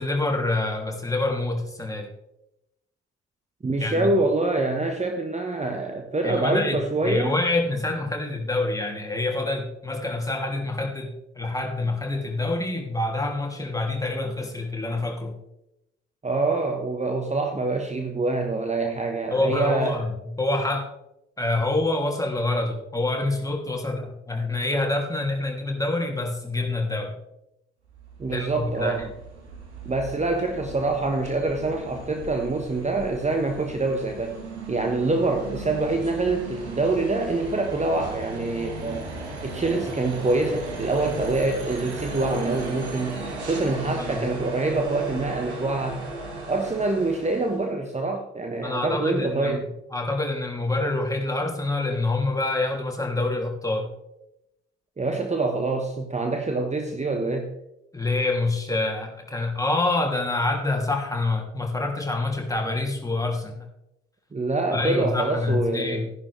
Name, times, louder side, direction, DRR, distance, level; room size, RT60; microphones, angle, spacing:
voice 1, 0.0-2.1 3.8-4.1 6.2-15.4 19.3-20.9 21.4-27.1 28.3-29.1 44.0-44.2 48.6-49.6 49.9-53.9 57.9-63.7 64.7-66.0, left 2 dB, 10° left, 1 dB, 3.0 m, -26 dB
voice 2, 3.6-7.4 16.2-20.0 28.2-29.1 29.8-34.4 34.7-39.1 39.4-43.2 43.5-46.0 46.5-49.7 55.0-57.5 64.3-66.1, right 2 dB, 20° right, 4 dB, 1.4 m, -25 dB
sound 1, 27.8-47.7, right 2 dB, 85° right, 1.7 m, -36 dB
13.5 x 11.0 x 3.4 m, 0.86 s
figure-of-eight pair, 45°, 33 cm